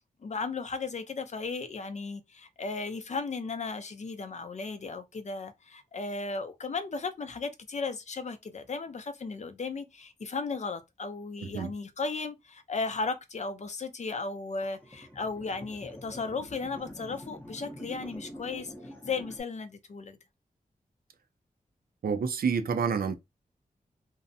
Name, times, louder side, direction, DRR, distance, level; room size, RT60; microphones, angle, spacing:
voice 1, 0.2-20.2, left 4 dB, 50° left, 0.5 m, -35 dB
sound 1, 14.6-19.4, equal, 10° left, 0.7 m, -46 dB
voice 2, 22.0-23.1, right 6 dB, 75° right, 0.4 m, -28 dB
2.7 x 2.1 x 2.6 m
wide cardioid pair, 90°, 15 cm